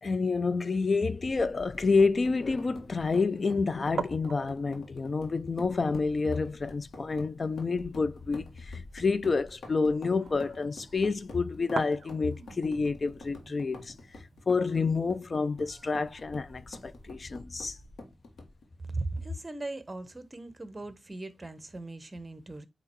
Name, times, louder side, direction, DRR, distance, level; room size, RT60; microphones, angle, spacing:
voice 1, 0.0-13.9 14.5-17.8, left 4 dB, 50° left, 0.5 m, -28 dB
sound 1, 1.2-18.7, left 2 dB, 85° left, 1.7 m, -48 dB
sound 2, 1.3-17.1, right 6 dB, 70° right, 0.4 m, -46 dB
voice 2, 18.9-22.7, right 2 dB, 30° right, 1.1 m, -38 dB
8.8 x 3.0 x 4.6 m
cardioid pair, 60°, 0 cm